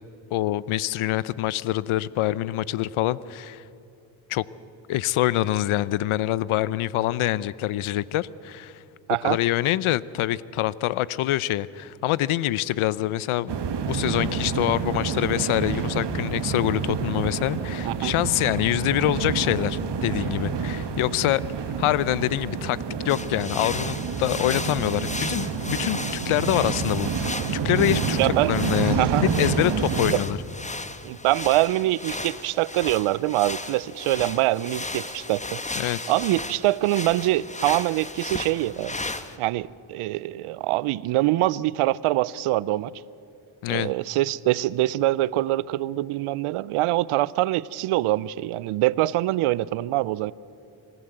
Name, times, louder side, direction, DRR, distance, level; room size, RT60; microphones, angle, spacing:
voice 1, 0.3-3.6 4.3-4.4 4.9-8.8 9.2-21.4 21.8-22.8 23.0-27.4 27.6-29.1 29.4-30.4 35.8-36.1 43.6-43.9, left 14 dB, 80° left, 20 dB, 0.7 m, -25 dB
sound 1, 13.5-30.1, right 6 dB, 55° right, 1.7 m, -28 dB
sound 2, 23.1-39.4, left 2 dB, 15° left, 1.2 m, -35 dB
voice 2, 28.2-28.5 29.0-29.2 30.1-30.2 31.0-35.6 36.1-39.0 39.4-42.9 43.7-50.3, right 16 dB, 85° right, 21 dB, 0.6 m, -24 dB
26.5 x 14.0 x 7.9 m, 2.8 s
supercardioid pair, 60°, 49 cm